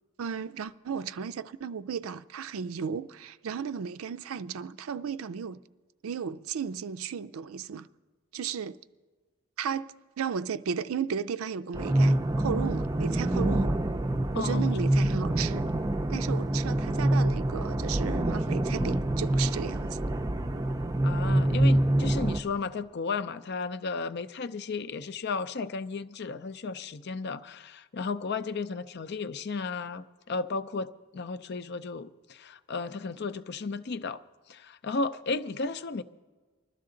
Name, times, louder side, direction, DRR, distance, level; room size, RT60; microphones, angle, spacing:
voice 1, 0.2-5.6 6.0-7.9 8.3-8.8 9.6-13.8 14.3-15.7 16.1-20.0, right 7 dB, 80° right, 0.4 m, -34 dB
sound 1, 11.7-22.4, right 1 dB, 15° right, 0.4 m, -26 dB
voice 2, 14.3-14.7 21.0-34.2 34.5-36.0, left 4 dB, 50° left, 0.5 m, -34 dB
21.0 x 12.5 x 3.8 m
head